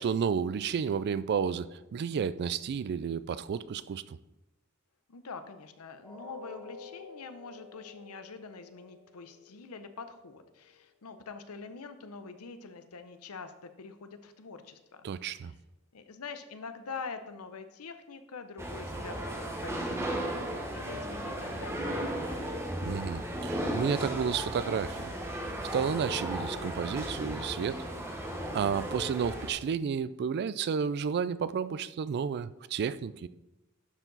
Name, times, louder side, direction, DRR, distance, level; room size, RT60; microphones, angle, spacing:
voice 1, 0.0-4.2 15.0-15.5 22.8-25.1 25.7-27.9 28.5-33.3, right 6 dB, 50° right, 16 dB, 0.3 m, -31 dB
voice 2, 5.1-15.1 15.3-15.5 15.9-22.6, left 4 dB, 85° left, 9 dB, 0.7 m, -45 dB
sound 1, 6.0-12.0 12.4-12.6 13.1-13.2, left 3 dB, 5° left, 2.2 m, -52 dB
sound 2, 18.6-29.5, right 1 dB, 10° right, 1.1 m, -35 dB
11.5 x 4.6 x 4.0 m, 0.98 s
head